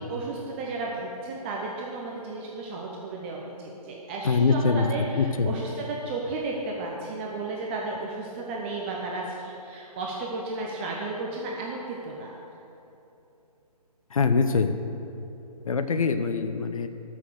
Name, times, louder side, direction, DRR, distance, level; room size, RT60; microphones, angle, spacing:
voice 1, 0.1-12.4, right 3 dB, 15° right, -2 dB, 0.7 m, -33 dB
voice 2, 4.2-4.8 5.2-5.5 14.1-14.7 15.7-16.9, left 5 dB, 60° left, 9 dB, 0.8 m, -23 dB
13.0 x 6.2 x 6.4 m, 2.9 s
figure-of-eight pair, 150°, 20 cm